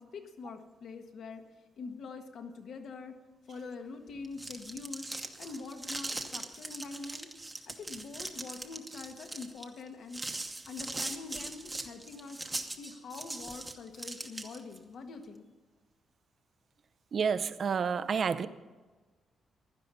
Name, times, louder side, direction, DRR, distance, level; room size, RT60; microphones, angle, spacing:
voice 1, 0.0-1.4 1.8-3.1 3.5-5.1 5.4-7.3 7.7-10.2 10.7-12.4 12.7-15.5, left 4 dB, 55° left, 5 dB, 1.5 m, -44 dB
sound 1, 4.2-14.8, right 2 dB, 10° right, 1.0 m, -40 dB
voice 2, 17.1-18.5, right 6 dB, 40° right, 13 dB, 0.6 m, -29 dB
16.0 x 12.0 x 5.6 m, 1.3 s
wide cardioid pair, 175°, 0 cm